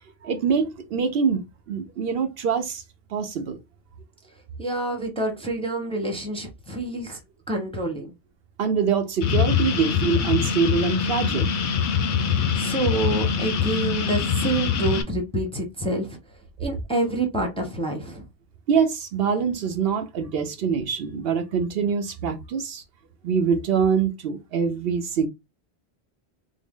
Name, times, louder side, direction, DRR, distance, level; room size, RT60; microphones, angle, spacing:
voice 1, 0.2-2.8 3.1-3.6 8.6-11.5 18.7-22.8 23.2-25.3, right 6 dB, 70° right, 0.8 m, -24 dB
voice 2, 4.6-7.2 7.5-8.1 12.1-16.2 16.6-18.2, right 2 dB, 5° left, 0.7 m, -27 dB
sound 1, 9.2-15.0, left 7 dB, 55° left, 0.6 m, -24 dB
3.6 x 2.0 x 3.5 m
omnidirectional pair, 1.1 m